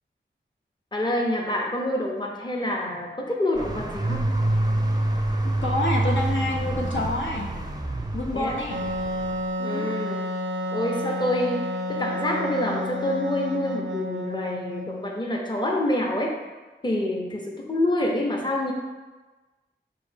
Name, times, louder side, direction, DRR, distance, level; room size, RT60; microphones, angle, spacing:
voice 1, 0.9-4.3 8.3-8.6 9.6-10.2 10.7-16.3 16.8-18.7, left 1 dB, 20° left, -1 dB, 0.7 m, -27 dB
sound 1, 3.5-9.5, right 1 dB, 20° right, 0.5 m, -27 dB
voice 2, 5.4-7.5 8.1-8.8 9.6-9.9, left 2 dB, 70° left, -2 dB, 0.7 m, -28 dB
Wind instrument woodwind instrument, 8.7-15.2, left 1 dB, 75° right, 0.4 m, -30 dB
5.4 x 2.7 x 3.4 m, 1.2 s
wide cardioid pair, 40°, 20 cm